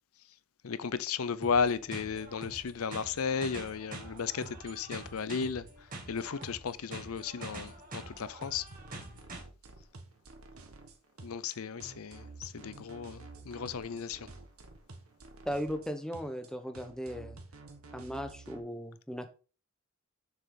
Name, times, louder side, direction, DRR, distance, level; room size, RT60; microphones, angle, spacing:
voice 1, 0.6-5.7 6.1-8.7 11.2-14.3, left 6 dB, 80° left, 0.6 m, -34 dB
sound 1, 1.4-9.4, right 2 dB, 40° right, 2.4 m, -46 dB
sound 2, 8.7-18.6, right 3 dB, 75° right, 1.5 m, -50 dB
voice 2, 15.4-17.4 17.9-19.3, equal, 5° left, 1.0 m, -37 dB
7.1 x 6.8 x 3.8 m
head